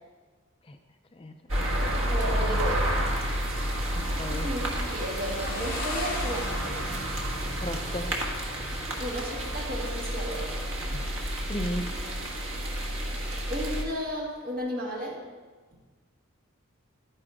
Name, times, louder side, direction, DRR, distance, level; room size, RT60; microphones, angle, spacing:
voice 1, 1.1-2.0 3.9-4.5 7.6-8.1 10.8-12.0, equal, 25° left, 6 dB, 0.5 m, -37 dB
sound 1, 1.5-13.8, right 1 dB, 65° right, 1.6 m, -30 dB
voice 2, 2.1-3.1 4.3-6.9 9.0-10.6 13.5-15.2, equal, 40° right, -5 dB, 2.3 m, -33 dB
Motorcycle, 2.2-10.4, left 1 dB, 45° left, 2.6 m, -42 dB
11.5 x 9.9 x 3.6 m, 1.4 s
head